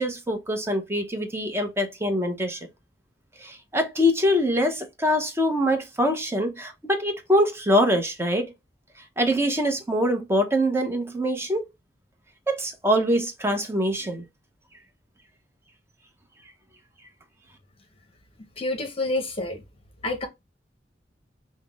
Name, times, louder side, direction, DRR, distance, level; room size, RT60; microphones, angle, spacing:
voice 1, 0.0-2.6 3.4-8.5 9.2-11.6 12.5-14.2, equal, 15° right, 0.9 m, -24 dB
voice 2, 18.6-19.6 20.0-20.3, left 2 dB, 35° left, 0.8 m, -28 dB
5.7 x 2.1 x 3.5 m
head